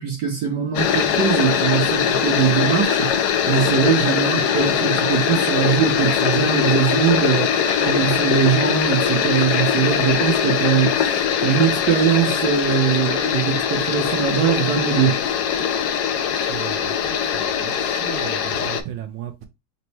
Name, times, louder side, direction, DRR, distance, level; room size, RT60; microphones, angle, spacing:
voice 1, 0.0-15.2, right 8 dB, 65° right, 1.4 m, -21 dB
sound 1, 0.7-18.8, left 8 dB, 70° left, 1.0 m, -21 dB
sound 2, 1.3-1.5 2.5-3.0 4.3-4.7 5.7-5.8 6.0-6.3 7.2-7.8 9.1-9.6, right 2 dB, 30° right, 0.7 m, -37 dB
voice 2, 16.1-19.5, right 10 dB, 80° right, 1.5 m, -36 dB
4.1 x 2.2 x 4.4 m
omnidirectional pair, 2.2 m